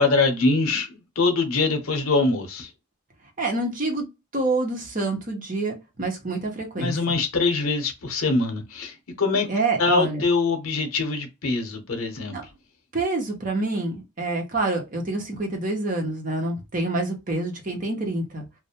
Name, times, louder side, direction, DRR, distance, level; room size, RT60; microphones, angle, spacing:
voice 1, 0.0-2.7 6.8-9.5 9.8-12.4, left 3 dB, 80° left, 0.8 m, -23 dB
voice 2, 3.4-4.1 4.3-6.9 9.5-10.2 12.3-12.4 12.9-18.4, right 2 dB, 35° right, 0.8 m, -27 dB
2.4 x 2.0 x 2.8 m
head